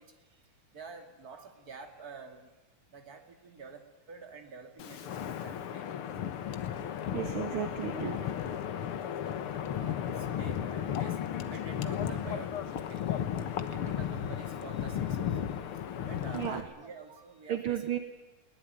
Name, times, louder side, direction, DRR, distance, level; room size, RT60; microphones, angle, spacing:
voice 1, 0.0-2.6 2.9-6.3 7.5-7.8 9.4-17.9, right 5 dB, 30° right, 5 dB, 2.8 m, -49 dB
Wind, 4.8-16.6, left 9 dB, 60° left, 1.7 m, -34 dB
voice 2, 7.1-8.3 16.3-16.6 17.5-18.0, right 9 dB, 55° right, 7 dB, 1.6 m, -33 dB
21.5 x 18.5 x 9.3 m, 1.1 s
omnidirectional pair, 3.4 m